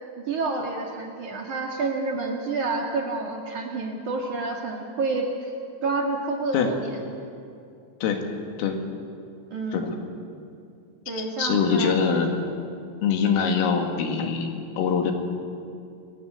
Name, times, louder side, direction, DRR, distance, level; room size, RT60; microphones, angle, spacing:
voice 1, 0.2-5.5 5.8-7.0 9.5-10.0 11.1-11.9, right 3 dB, 50° right, 0 dB, 2.6 m, -29 dB
voice 2, 11.1-12.3 13.0-15.1, left 6 dB, 85° left, 4 dB, 4.9 m, -23 dB
28.5 x 21.5 x 8.3 m, 2.5 s
omnidirectional pair, 5.7 m